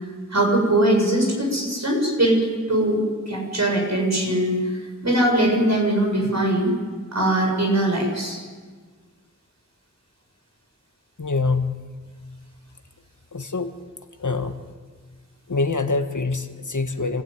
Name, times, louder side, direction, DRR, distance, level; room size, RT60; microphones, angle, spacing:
voice 1, 0.3-4.6 5.0-6.7 7.1-8.4, right 1 dB, 60° right, 0 dB, 7.0 m, -21 dB
voice 2, 11.2-11.8 13.3-13.7 14.2-14.5 15.5-17.2, left 3 dB, 75° left, 7 dB, 1.6 m, -24 dB
26.5 x 16.0 x 9.4 m, 1.5 s
wide cardioid pair, 50°, 31 cm